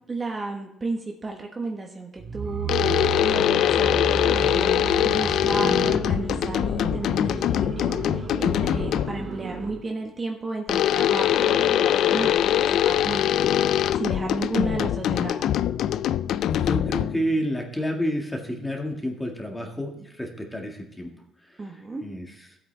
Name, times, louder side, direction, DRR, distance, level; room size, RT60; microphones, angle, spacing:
voice 1, 0.1-2.7 3.2-13.3 13.9-15.4 21.6-22.0, right 3 dB, 25° right, 2 dB, 1.3 m, -33 dB
sound 1, 2.2-9.9, right 6 dB, 45° right, 1.6 m, -32 dB
sound 2, 2.7-9.3 10.7-17.3, left 11 dB, 65° left, 0.3 m, -23 dB
voice 2, 16.5-21.1 21.5-22.5, equal, 10° left, 2 dB, 1.8 m, -30 dB
14.5 x 8.4 x 3.4 m, 0.77 s
cardioid pair, 130°, 0 cm